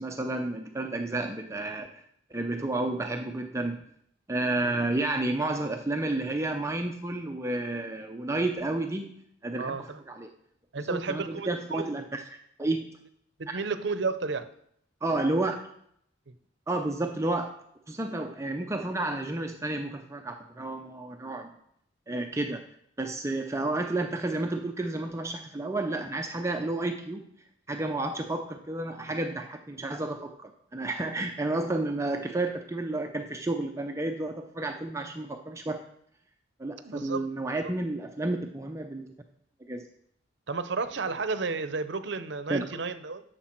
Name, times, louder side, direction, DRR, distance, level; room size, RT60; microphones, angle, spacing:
voice 1, 0.0-2.0 2.3-3.8 4.3-9.1 9.4-10.3 10.8-12.2 12.6-12.9 13.5-13.6 15.0-15.6 16.7-17.5 17.9-21.5 22.1-22.6 23.0-27.3 27.7-35.8 36.6-39.1 39.7-39.9 42.5-42.7, right 2 dB, 15° right, 0.5 m, -31 dB
voice 2, 9.6-10.0 10.7-11.9 13.4-14.5 36.8-37.2 40.5-43.2, right 4 dB, 65° right, 0.7 m, -32 dB
11.5 x 6.6 x 4.5 m
head